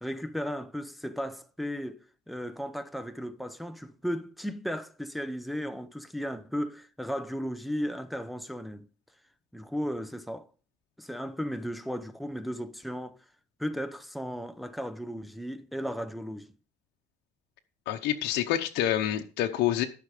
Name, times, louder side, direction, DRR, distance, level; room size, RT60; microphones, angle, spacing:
voice 1, 0.0-8.9 9.5-10.5 11.0-13.2 13.6-16.5, equal, ahead, 0.8 m, -35 dB
voice 2, 17.9-19.8, left 12 dB, 85° left, 0.9 m, -27 dB
13.5 x 5.9 x 5.1 m
cardioid pair, 110°, 17 cm